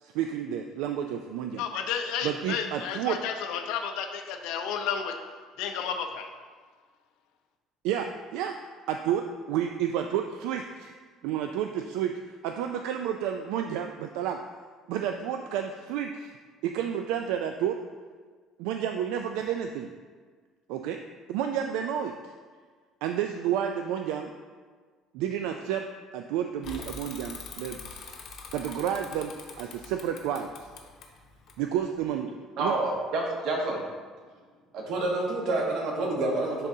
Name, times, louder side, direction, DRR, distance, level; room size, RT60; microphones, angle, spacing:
voice 1, 0.0-1.6 2.2-3.2 7.8-8.6 8.9-10.9 11.2-14.4 14.9-16.3 16.6-17.8 18.6-19.9 20.7-21.0 21.3-22.3 23.0-24.3 25.1-25.9 26.1-27.8 28.5-30.7 31.6-32.3 32.6-32.7, right 9 dB, 90° right, 5 dB, 0.3 m, -30 dB
voice 2, 1.6-5.1 5.6-6.3, left 7 dB, 85° left, 5 dB, 0.6 m, -32 dB
Bicycle / Mechanisms, 26.6-32.1, left 4 dB, 50° left, 0.8 m, -44 dB
voice 3, 32.6-33.9 34.7-36.7, right 2 dB, 60° right, -1 dB, 1.2 m, -28 dB
10.5 x 3.7 x 2.7 m, 1.5 s
cardioid pair, 160°, 0 cm